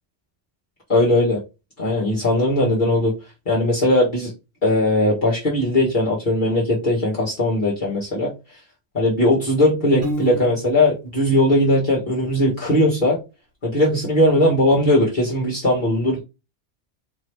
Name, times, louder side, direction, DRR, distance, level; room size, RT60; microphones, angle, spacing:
voice 1, 0.9-1.4 1.8-3.1 3.5-4.3 4.6-8.3 8.9-13.2 13.6-16.2, left 1 dB, 40° left, -7 dB, 1.7 m, -19 dB
Piano, 10.0-11.0, equal, 75° right, 1.9 m, -29 dB
4.5 x 3.0 x 3.2 m, 0.27 s
omnidirectional pair, 1.2 m